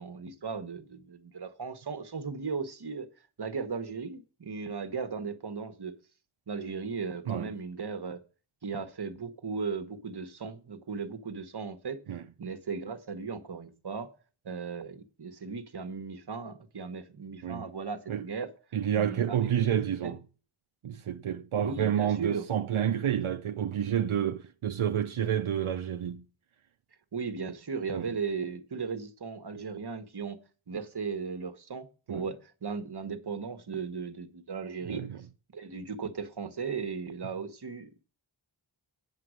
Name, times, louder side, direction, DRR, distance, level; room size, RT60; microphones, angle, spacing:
voice 1, 0.0-3.1 3.4-5.9 6.5-8.2 8.6-12.0 12.4-14.1 14.4-18.5 19.0-20.1 21.6-22.5 27.1-30.4 30.7-35.2 35.5-38.0, right 5 dB, 55° right, 1.1 m, -37 dB
voice 2, 18.7-20.2 20.8-26.2 27.9-28.1 32.1-32.2 34.9-35.2, right 9 dB, 80° right, 0.6 m, -29 dB
9.1 x 7.6 x 6.3 m
wide cardioid pair, 75°, 48 cm